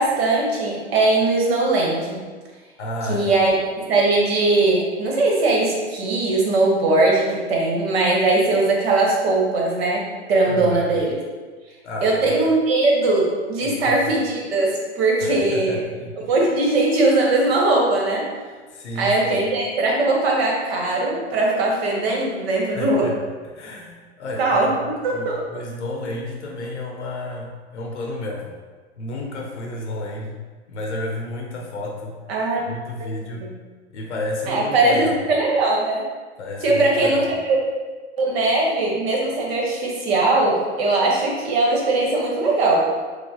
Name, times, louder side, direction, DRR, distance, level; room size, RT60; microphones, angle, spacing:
voice 1, 0.0-2.2 3.1-11.1 12.0-15.8 16.3-18.3 19.0-23.1 24.4-24.7 25.0-25.4 32.3-32.7 33.0-33.1 33.4-33.5 34.5-36.0 36.6-37.6 38.2-42.8, right 2 dB, 60° right, -2 dB, 1.1 m, -20 dB
voice 2, 2.8-3.3 10.5-11.0 11.8-12.4 13.6-14.0 15.2-16.2 18.7-19.2 22.7-23.2 23.4-24.8 25.1-28.5 29.0-30.4 30.7-32.2 32.7-33.5 33.9-35.3 36.4-37.4, left 1 dB, 80° left, 0 dB, 0.6 m, -31 dB
4.7 x 2.1 x 2.7 m, 1.4 s
figure-of-eight pair, 90°, 34 cm